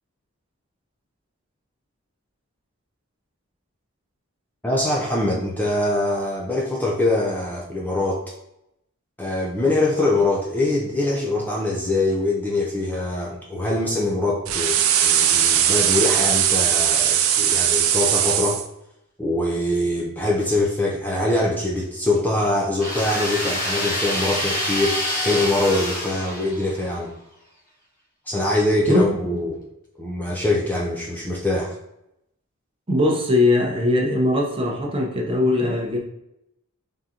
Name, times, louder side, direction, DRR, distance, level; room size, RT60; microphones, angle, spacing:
voice 1, 4.6-8.2 9.2-18.6 19.2-25.0 25.2-27.1 28.3-29.6 30.0-31.7, left 2 dB, 10° left, -3 dB, 0.4 m, -23 dB
sound 1, 14.5-18.6, right 9 dB, 70° right, 0.4 m, -19 dB
sound 2, 22.8-26.9, left 1 dB, 40° left, 0.9 m, -26 dB
voice 2, 32.9-36.0, left 2 dB, 25° right, 0 dB, 0.7 m, -20 dB
3.8 x 3.6 x 2.8 m, 0.83 s
head